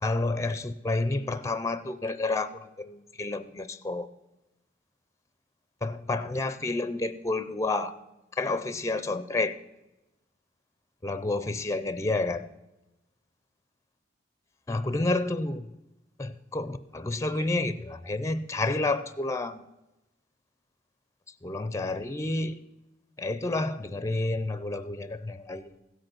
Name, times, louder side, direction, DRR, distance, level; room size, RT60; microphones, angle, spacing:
voice 1, 0.0-4.1 5.8-7.9 8.3-9.6 11.0-12.5 14.7-15.7 16.2-19.6 21.4-22.6 23.2-25.8, left 2 dB, 15° left, 0.4 m, -30 dB
16.0 x 7.8 x 6.0 m
head